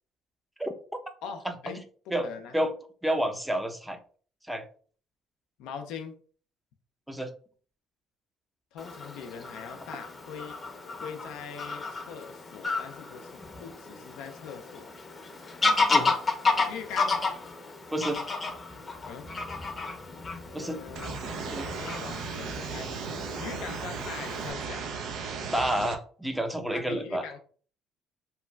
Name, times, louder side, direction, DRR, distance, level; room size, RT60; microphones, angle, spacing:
voice 1, 1.2-1.8 2.2-2.6 5.6-6.1 8.7-10.6 11.0-14.9 15.9-16.2 16.7-17.2 19.1-19.3 20.5-21.2 21.8-23.0 23.4-24.8 26.7-27.4, left 7 dB, 70° left, 6 dB, 0.4 m, -41 dB
voice 2, 3.0-4.0 4.5-4.7 7.1-7.3 15.9-16.1 17.9-18.2 20.5-20.8 21.5-21.7 25.5-27.2, right 1 dB, 5° right, 6 dB, 0.5 m, -29 dB
Fowl / Bird vocalization bird call bird song, 8.8-24.5, left 3 dB, 35° left, 0.7 m, -32 dB
sound 1, 20.9-25.9, right 5 dB, 70° right, 0.4 m, -36 dB
2.9 x 2.2 x 2.2 m, 0.43 s
hypercardioid pair, 55°, 0 cm